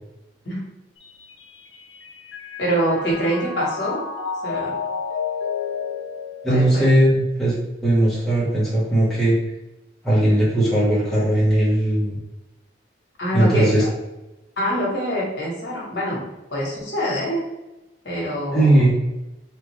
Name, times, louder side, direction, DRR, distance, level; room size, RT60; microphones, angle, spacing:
Mallet percussion, 1.0-7.5, left 6 dB, 85° left, 0.5 m, -31 dB
voice 1, 2.6-4.0 4.4-4.8 6.5-6.9 13.2-13.7 14.6-16.2 16.5-17.4 18.0-18.8, equal, 60° left, -4 dB, 1.1 m, -24 dB
voice 2, 6.4-7.5 7.8-9.3 10.0-12.2 13.3-13.8 18.5-18.9, right 1 dB, ahead, -10 dB, 0.9 m, -18 dB
3.4 x 2.5 x 3.0 m, 0.97 s
head